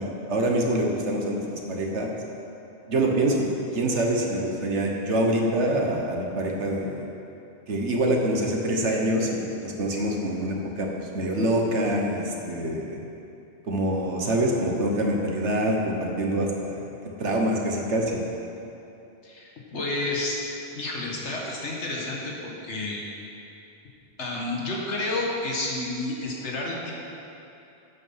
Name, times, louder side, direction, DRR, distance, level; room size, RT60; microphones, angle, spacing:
voice 1, 0.0-2.1 2.9-3.5 3.7-7.1 7.7-13.0 13.7-16.9 17.2-18.2, right 1 dB, 85° right, 1 dB, 1.6 m, -25 dB
voice 2, 19.2-20.4 20.7-23.0 24.2-26.9, left 2 dB, 85° left, -2 dB, 1.9 m, -30 dB
11.0 x 8.4 x 5.7 m, 2.8 s
omnidirectional pair, 1.1 m